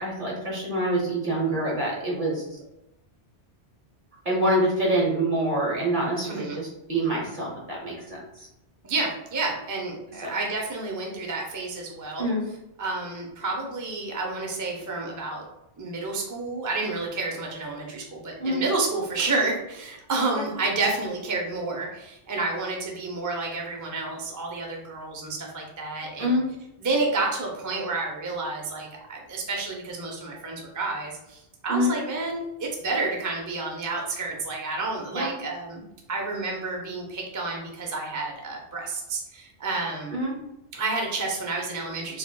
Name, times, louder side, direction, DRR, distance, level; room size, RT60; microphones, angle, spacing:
voice 1, 0.0-2.6 4.2-8.5 10.2-10.3 12.2-12.4 18.4-18.6 20.3-20.4 26.2-26.4 31.7-31.9 35.1-35.3 40.1-40.3, right 1 dB, 45° right, -3 dB, 1.2 m, -26 dB
voice 2, 8.8-12.3 12.8-15.4 15.8-26.4 26.8-40.1 40.7-42.2, right 3 dB, 25° right, 0 dB, 0.4 m, -30 dB
3.6 x 3.4 x 2.2 m, 0.88 s
omnidirectional pair, 1.2 m